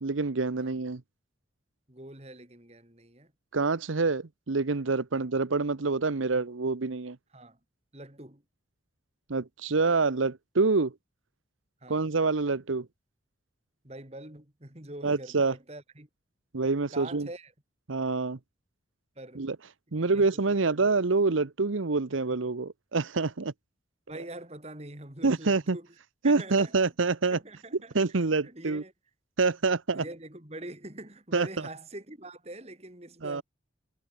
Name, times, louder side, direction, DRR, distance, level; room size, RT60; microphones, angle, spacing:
voice 1, 0.0-1.0 3.5-7.2 9.3-10.9 11.9-12.9 15.0-15.5 16.5-17.3 17.9-18.4 19.4-19.6 19.9-23.5 25.2-25.8 26.2-27.4 27.9-28.8 29.4-30.0 31.3-31.5 33.2-33.4, right 3 dB, 90° right, 0.9 m, -26 dB
voice 2, 1.9-3.3 5.1-5.3 7.3-7.6 7.9-8.4 11.8-12.0 13.8-16.1 16.9-17.5 19.1-19.5 19.9-20.9 24.1-25.9 26.2-26.9 27.3-28.9 29.6-33.4, right 1 dB, 30° right, 3.0 m, -44 dB
head